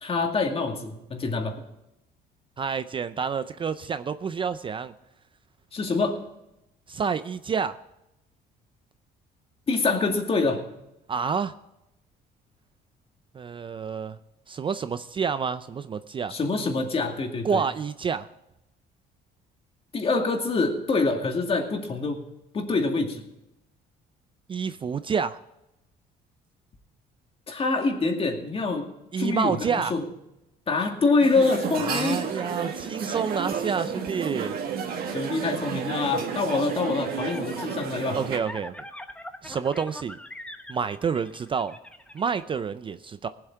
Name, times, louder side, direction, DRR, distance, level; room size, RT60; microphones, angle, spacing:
voice 1, 0.0-1.6 5.7-6.2 9.7-10.6 16.3-17.6 19.9-22.2 22.5-23.2 27.5-28.8 29.2-30.1 30.7-32.2 35.1-38.2, left 3 dB, 35° left, 3 dB, 2.3 m, -25 dB
voice 2, 2.6-4.9 6.9-7.8 11.1-11.5 13.3-14.2 14.5-16.4 17.4-18.3 24.5-25.4 29.1-29.9 31.8-34.6 38.1-38.7 39.4-40.2 40.7-41.8 42.1-43.3, right 6 dB, 30° right, 12 dB, 0.4 m, -28 dB
sound 1, 31.2-38.4, right 6 dB, 65° right, 1.9 m, -31 dB
sound 2, 36.7-42.4, left 1 dB, 5° left, 1.0 m, -42 dB
18.0 x 7.9 x 4.6 m, 0.89 s
cardioid pair, 110°, 17 cm